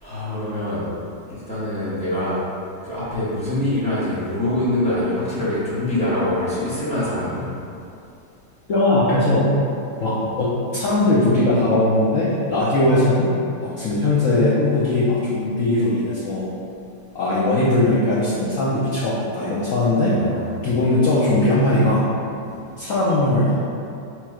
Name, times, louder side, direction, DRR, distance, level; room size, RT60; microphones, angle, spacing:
voice 1, 0.0-0.9 1.3-2.4 2.8-7.5 9.9-10.1 20.1-20.5 22.4-22.6, left 1 dB, 5° left, -12 dB, 0.5 m, -24 dB
voice 2, 8.7-9.5 10.0-13.3 13.6-16.5 17.1-20.2 20.6-22.0 22.8-23.6, left 2 dB, 90° left, -9 dB, 0.7 m, -19 dB
3.4 x 3.2 x 4.8 m, 2.5 s
omnidirectional pair, 2.3 m